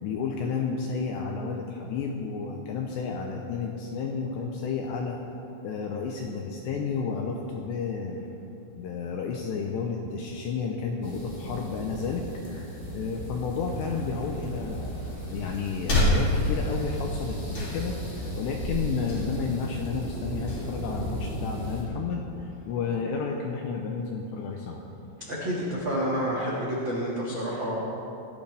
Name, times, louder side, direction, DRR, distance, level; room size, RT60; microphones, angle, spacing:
voice 1, 0.0-5.2 5.6-8.3 8.7-24.8, left 5 dB, 80° left, 1 dB, 2.5 m, -32 dB
sound 1, 11.0-21.8, equal, 10° left, 2.6 m, -36 dB
sound 2, 14.4-21.9, left 1 dB, 40° left, 3.6 m, -31 dB
voice 2, 25.2-27.8, equal, 60° right, -6 dB, 1.2 m, -29 dB
19.0 x 14.5 x 3.5 m, 2.9 s
omnidirectional pair, 5.9 m